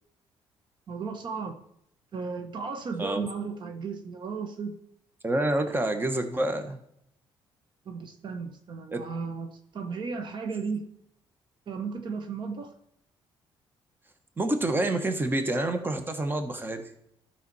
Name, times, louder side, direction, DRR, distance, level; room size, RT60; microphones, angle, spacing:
voice 1, 0.9-1.6 2.1-4.8 7.9-10.9 11.7-12.7, right 5 dB, 50° right, 6 dB, 1.0 m, -35 dB
voice 2, 5.2-6.8 8.9-9.0 14.4-16.9, right 1 dB, 20° right, 7 dB, 1.2 m, -27 dB
12.5 x 5.8 x 4.2 m, 0.74 s
cardioid pair, 100°, 10 cm